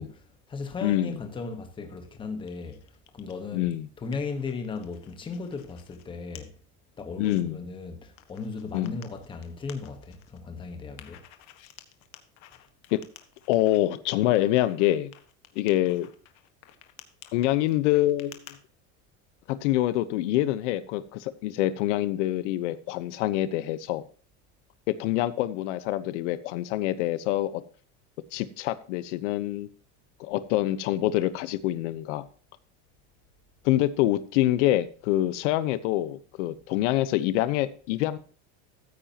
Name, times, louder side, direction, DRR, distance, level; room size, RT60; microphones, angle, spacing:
voice 1, 0.0-6.5 7.0-11.2, left 4 dB, 15° left, 1.2 m, -36 dB
voice 2, 0.8-1.2 3.5-3.9 7.2-7.6 8.7-9.0 12.9-13.0 13.5-15.1 15.6-16.1 17.3-18.4 19.5-24.0 24.9-27.6 28.3-29.7 30.2-32.2 33.6-38.2, left 14 dB, 85° left, 1.0 m, -26 dB
sound 1, 2.5-3.4 3.8-6.0 6.4-6.5 6.9-7.4 8.2-10.4 11.0-13.8 14.4-18.6, left 13 dB, 45° left, 1.5 m, -52 dB
14.5 x 8.9 x 2.9 m
cardioid pair, 180°, 35 cm